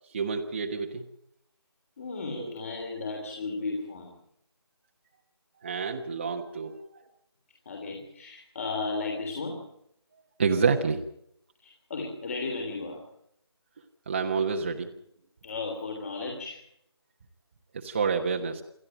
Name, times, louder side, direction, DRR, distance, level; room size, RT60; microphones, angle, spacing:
voice 1, 0.1-1.0 2.4-2.5 5.6-6.9 10.4-11.0 14.1-14.9 17.7-18.6, right 5 dB, 25° right, 1 dB, 1.2 m, -28 dB
voice 2, 2.0-4.2 7.6-9.7 11.6-13.0 15.4-16.6, left 3 dB, 30° left, 2 dB, 3.3 m, -34 dB
28.0 x 12.5 x 8.9 m, 0.74 s
figure-of-eight pair, 170°, 14 cm